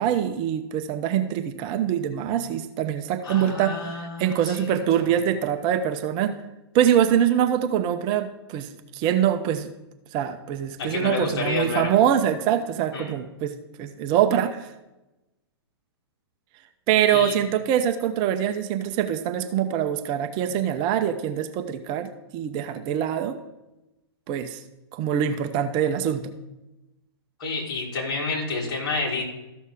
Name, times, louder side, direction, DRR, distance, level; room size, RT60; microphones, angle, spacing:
voice 1, 0.0-6.4 6.7-9.7 10.1-14.7 16.9-23.4 24.3-24.6 24.9-26.3, right 9 dB, 35° right, 9 dB, 0.7 m, -24 dB
voice 2, 3.2-5.1 10.8-11.9 12.9-13.1 17.1-17.3 27.4-29.2, left 3 dB, 55° left, -2 dB, 3.4 m, -29 dB
13.5 x 6.4 x 3.5 m, 0.99 s
hypercardioid pair, 115°, 13 cm